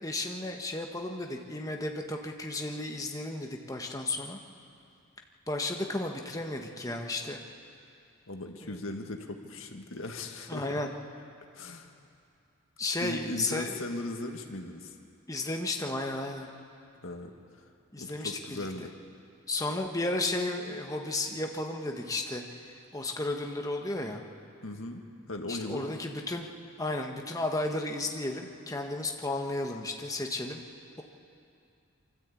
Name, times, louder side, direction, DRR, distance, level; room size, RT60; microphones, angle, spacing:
voice 1, 0.0-4.4 5.5-7.4 8.6-8.8 10.5-10.9 12.8-13.8 15.3-16.5 17.9-18.9 19.5-24.2 25.5-26.5 26.8-30.6, left 2 dB, 15° left, 2 dB, 1.2 m, -33 dB
voice 2, 8.3-10.8 11.5-12.0 13.0-14.9 17.0-17.3 17.6-17.7 18.0-18.9 24.6-25.0 25.3-25.9, left 2 dB, 70° left, 4 dB, 1.6 m, -38 dB
24.0 x 13.5 x 8.4 m, 2.6 s
head